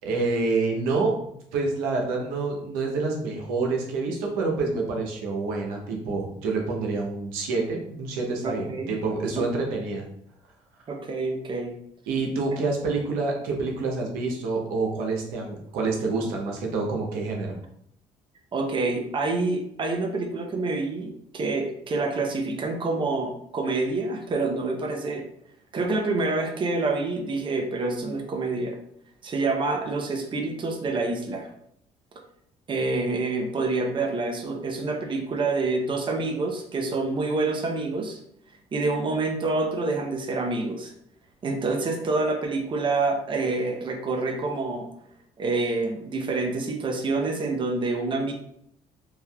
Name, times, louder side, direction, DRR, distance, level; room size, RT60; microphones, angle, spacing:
voice 1, 0.0-10.1 12.1-17.5, right 3 dB, 85° right, 0 dB, 0.7 m, -27 dB
voice 2, 8.4-8.9 9.4-9.5 10.9-11.7 18.5-25.2 25.7-28.8 29.2-31.5 32.7-38.2 38.7-40.9 41.4-44.9 45.4-48.3, right 3 dB, 35° right, 3 dB, 0.6 m, -27 dB
3.3 x 2.7 x 2.3 m, 0.71 s
supercardioid pair, 75°, 14 cm